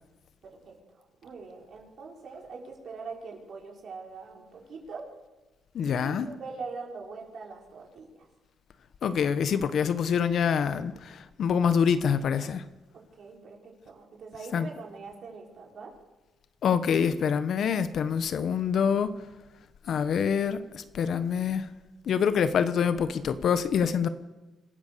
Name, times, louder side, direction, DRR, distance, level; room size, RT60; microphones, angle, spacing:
voice 1, 0.4-5.1 5.9-8.3 12.9-15.9, right 4 dB, 55° right, 5.5 m, -43 dB
voice 2, 5.7-6.3 9.0-12.6 14.5-14.7 16.6-19.1 19.9-21.7 22.1-24.1, left 7 dB, 65° left, 1.3 m, -26 dB
26.0 x 14.5 x 7.0 m
cardioid pair, 90°, 0 cm